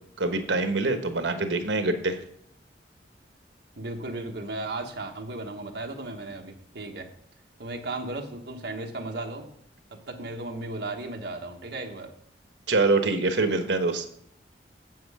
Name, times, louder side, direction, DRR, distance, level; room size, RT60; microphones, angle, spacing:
voice 1, 0.2-2.2 12.7-14.0, right 3 dB, 90° right, 7 dB, 1.2 m, -25 dB
voice 2, 3.8-7.1 7.6-9.5 9.9-12.1, right 2 dB, 70° right, 2 dB, 1.2 m, -35 dB
7.8 x 7.6 x 4.8 m, 0.68 s
head